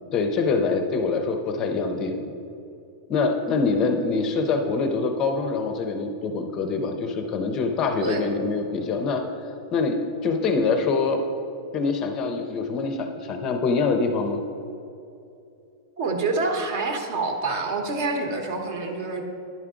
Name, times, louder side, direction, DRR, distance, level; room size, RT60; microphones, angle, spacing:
voice 1, 0.1-2.3 3.1-9.2 9.7-11.2 11.7-14.4, left 4 dB, 25° left, 5 dB, 0.5 m, -24 dB
voice 2, 16.0-19.2, right 3 dB, 50° right, 4 dB, 0.9 m, -27 dB
10.5 x 4.7 x 3.7 m, 2.7 s
supercardioid pair, 165°, 2 cm